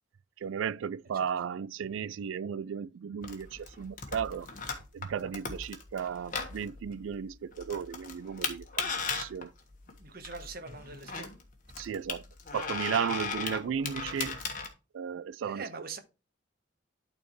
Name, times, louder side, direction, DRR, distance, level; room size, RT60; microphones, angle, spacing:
voice 1, 0.4-4.5 4.9-9.5 11.8-12.3 12.5-14.4 14.9-15.7, right 7 dB, 75° right, 0.3 m, -35 dB
sound 1, 3.2-14.7, left 5 dB, 40° left, 1.4 m, -37 dB
voice 2, 9.9-11.3 15.4-16.0, right 4 dB, 45° right, 1.1 m, -43 dB
12.0 x 4.3 x 3.1 m
head